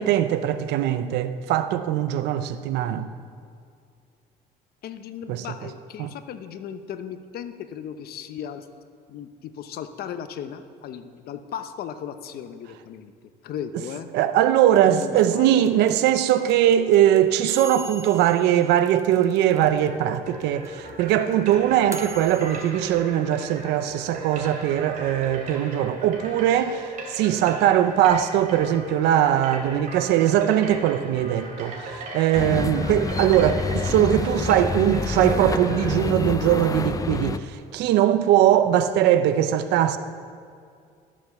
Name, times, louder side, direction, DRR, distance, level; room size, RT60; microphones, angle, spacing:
voice 1, 0.0-3.1 5.3-5.5 6.0-6.1 14.1-40.0, right 11 dB, 90° right, 0.6 m, -21 dB
voice 2, 4.8-8.7 9.1-14.1 14.8-15.9, left 8 dB, 65° left, 0.8 m, -36 dB
sound 1, 14.7-19.9 20.1-20.2 20.4-22.7, right 3 dB, 15° right, 0.7 m, -40 dB
sound 2, 19.4-35.9, right 2 dB, 55° right, 2.8 m, -38 dB
sound 3, 32.4-37.4, left 4 dB, 20° left, 0.4 m, -28 dB
12.5 x 7.4 x 6.8 m
cardioid pair, 110°, 17 cm